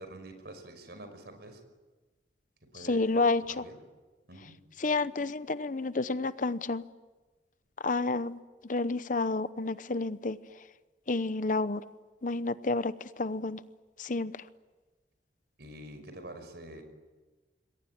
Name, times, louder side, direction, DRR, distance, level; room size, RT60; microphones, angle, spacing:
voice 1, 0.0-1.6 2.6-3.8 4.3-4.6 15.6-16.8, right 1 dB, 65° right, 8 dB, 5.5 m, -47 dB
voice 2, 2.9-3.6 4.8-6.8 7.8-10.4 11.1-11.8 12.2-13.6 14.0-14.4, left 3 dB, 45° left, 14 dB, 0.8 m, -30 dB
27.0 x 22.5 x 9.5 m, 1.3 s
head